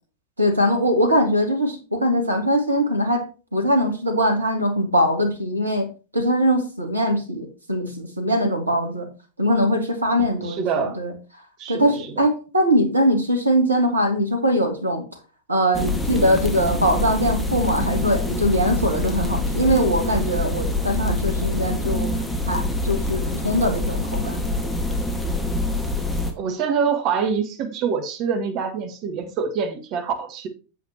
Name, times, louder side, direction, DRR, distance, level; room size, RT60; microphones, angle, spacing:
voice 1, 0.4-3.2 3.5-9.1 9.4-11.1 11.7-15.0 15.5-22.1 22.5-24.4, equal, 80° right, 5 dB, 2.3 m, -21 dB
voice 2, 10.4-11.0 11.6-12.3 26.4-30.5, right 6 dB, 40° right, 6 dB, 1.9 m, -25 dB
sound 1, 15.7-26.3, left 2 dB, 10° left, 1.8 m, -25 dB
8.7 x 8.0 x 2.9 m, 0.34 s
figure-of-eight pair, 90°, 0 cm